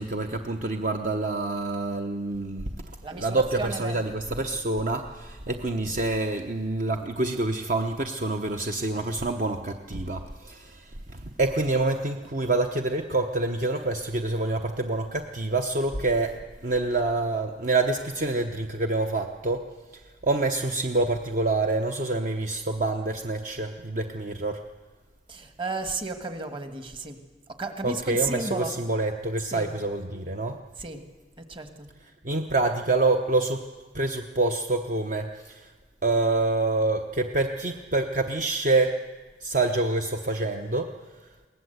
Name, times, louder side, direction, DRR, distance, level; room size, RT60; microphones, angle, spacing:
voice 1, 0.0-19.7 19.9-24.7 27.8-30.6 32.2-33.7 33.9-35.7 36.0-39.1 39.4-41.3, right 2 dB, 50° right, 5 dB, 0.9 m, -27 dB
voice 2, 3.0-4.1 5.5-5.6 25.3-27.2 27.6-28.8 29.5-29.7 30.8-31.0 31.4-31.9, right 3 dB, 30° right, 7 dB, 1.6 m, -33 dB
22.0 x 18.5 x 8.0 m, 1.3 s
head